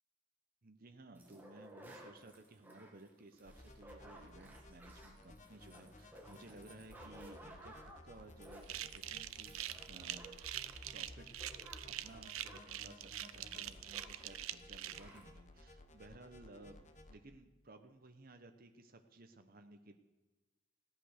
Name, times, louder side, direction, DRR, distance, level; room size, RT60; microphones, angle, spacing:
voice 1, 0.6-10.3 10.9-11.3 11.8-16.8 17.1-20.0, right 2 dB, 45° right, 6 dB, 0.9 m, -57 dB
sound 1, 1.1-14.3 14.6-14.7 14.9-15.3, right 1 dB, 10° right, 1.9 m, -57 dB
sound 2, 3.5-17.2, left 1 dB, 35° left, 1.1 m, -57 dB
sound 3, 8.6-15.0, right 13 dB, 80° right, 0.6 m, -44 dB
16.0 x 11.0 x 6.5 m, 1.2 s
head